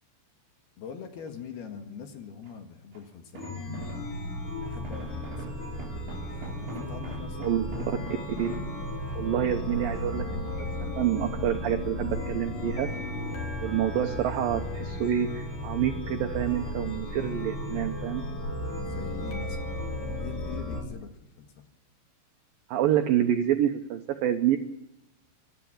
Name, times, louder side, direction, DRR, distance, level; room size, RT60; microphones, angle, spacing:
voice 1, 0.8-4.0 4.6-5.9 6.3-8.3 13.3-13.5 18.8-21.7, left 7 dB, 60° left, 5 dB, 3.4 m, -44 dB
sound 1, 1.2-1.6 2.4-4.3 4.6-9.4 9.9-10.8 11.2-12.0 12.5-13.9 14.2-15.3 15.6-16.2 16.6-17.0 17.3-17.4, right 5 dB, 55° right, 5.3 m, -47 dB
Chime, 3.4-20.8, left 1 dB, 45° left, 4.6 m, -34 dB
voice 2, 9.2-12.9 13.6-18.2 22.7-24.6, right 10 dB, 85° right, 6 dB, 2.0 m, -27 dB
27.0 x 13.0 x 8.7 m, 0.89 s
omnidirectional pair, 5.6 m